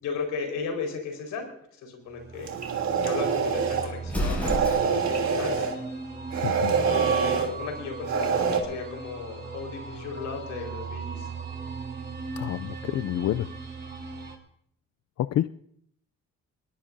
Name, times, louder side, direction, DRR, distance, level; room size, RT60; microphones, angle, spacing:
voice 1, 0.0-1.5 1.8-2.5 3.0-5.7 6.8-11.3, left 5 dB, 90° left, 2 dB, 4.7 m, -35 dB
sound 1, 2.0-14.4, right 4 dB, 35° right, 3.3 m, -38 dB
coffeemaker breathing, 2.4-3.9 4.4-5.8 6.3-7.5 8.0-8.6, right 5 dB, 65° right, 3.1 m, -25 dB
Explosion, 4.0-5.2, equal, 5° left, 7.4 m, -29 dB
voice 2, 6.4-6.8 12.4-13.5 15.2-15.5, left 12 dB, 60° left, 13 dB, 0.5 m, -28 dB
21.0 x 20.5 x 2.7 m, 0.69 s
cardioid pair, 90°, 30 cm